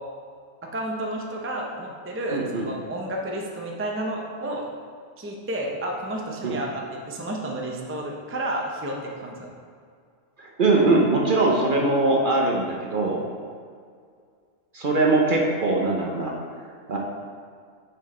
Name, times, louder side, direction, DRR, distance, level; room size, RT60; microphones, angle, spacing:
voice 1, 0.6-4.7 5.2-9.5, right 1 dB, 20° right, -1 dB, 0.3 m, -31 dB
voice 2, 2.3-2.7 6.4-6.6 10.4-13.2 14.7-16.3 16.9-17.0, right 2 dB, 45° right, -1 dB, 0.7 m, -21 dB
6.0 x 5.5 x 4.2 m, 2.1 s
omnidirectional pair, 1.5 m